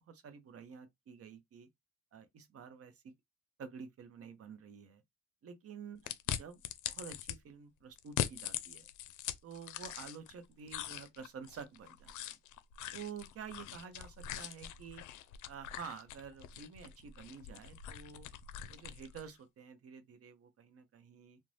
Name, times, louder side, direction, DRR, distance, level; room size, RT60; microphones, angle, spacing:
voice 1, 0.1-1.7 2.1-3.1 3.6-5.0 5.4-6.0 6.3-6.6 6.9-8.9 9.4-12.4 12.9-15.0 15.5-18.3 18.7-21.4, right 6 dB, 50° right, 0.7 m, -49 dB
sound 1, 6.1-7.4 8.0-10.3 10.7-19.3, left 11 dB, 75° left, 0.5 m, -42 dB
2.5 x 2.1 x 3.2 m
cardioid pair, 90°, 30 cm